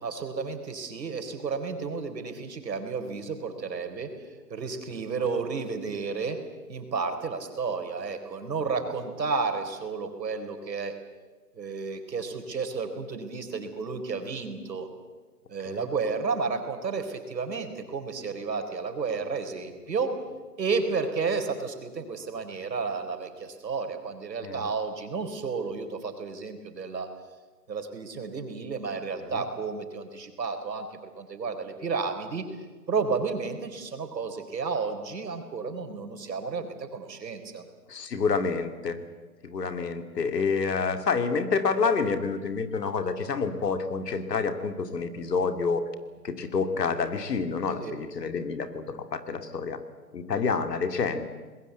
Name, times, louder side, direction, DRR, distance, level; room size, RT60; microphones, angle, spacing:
voice 1, 0.0-6.4 6.7-11.0 11.5-14.9 15.5-20.2 20.6-27.1 27.7-32.4 32.9-37.7 47.8-48.0, right 4 dB, 85° right, 6 dB, 4.3 m, -32 dB
voice 2, 37.9-39.0 39.4-45.8 46.2-49.8 50.1-51.3, left 5 dB, 75° left, 8 dB, 2.6 m, -28 dB
25.0 x 20.5 x 8.0 m, 1.3 s
hypercardioid pair, 170°, 49 cm